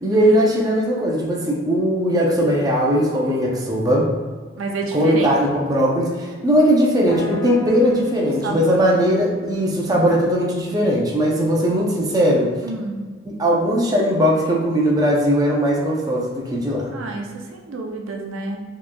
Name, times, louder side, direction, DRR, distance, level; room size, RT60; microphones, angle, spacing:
voice 1, 0.0-4.1 4.9-12.5 13.2-16.9, equal, 20° right, -3 dB, 0.5 m, -19 dB
voice 2, 4.6-5.4 8.4-8.8 12.6-13.0 16.9-18.6, right 3 dB, 80° right, 2 dB, 0.5 m, -29 dB
sound 1, 7.1-11.2, left 4 dB, 65° left, 0.7 m, -36 dB
4.3 x 3.0 x 2.2 m, 1.4 s
head